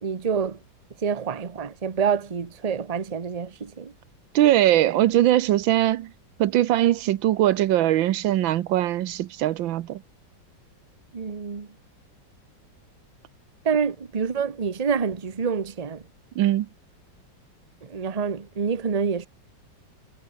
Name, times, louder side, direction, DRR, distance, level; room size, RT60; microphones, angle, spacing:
voice 1, 0.0-0.6 1.0-3.9 11.1-11.7 13.6-16.0 17.8-19.3, right 6 dB, 25° right, 1.0 m, -27 dB
voice 2, 4.3-6.1 6.4-10.0 16.4-16.7, right 13 dB, 85° right, 1.6 m, -21 dB
omnidirectional pair, 2.1 m